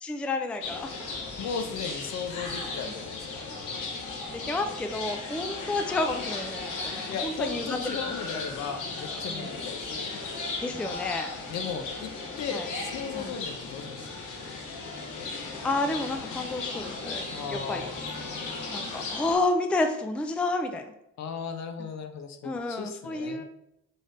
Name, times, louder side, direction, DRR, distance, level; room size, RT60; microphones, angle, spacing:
voice 1, 0.0-1.0 2.6-3.0 4.3-7.8 9.3-9.6 10.6-11.3 12.5-12.7 13.1-13.3 15.6-17.2 17.5-17.9 18.7-20.9 22.4-23.4, left 2 dB, 5° left, 5 dB, 0.3 m, -30 dB
sound 1, 0.6-19.4, left 3 dB, 90° left, 0.9 m, -36 dB
voice 2, 1.4-3.4 7.1-9.8 11.5-12.1 12.4-14.0 17.3-17.9 21.2-22.4 22.7-23.4, left 6 dB, 65° left, 7 dB, 0.6 m, -36 dB
3.9 x 3.3 x 2.6 m, 0.82 s
cardioid pair, 90°, 30 cm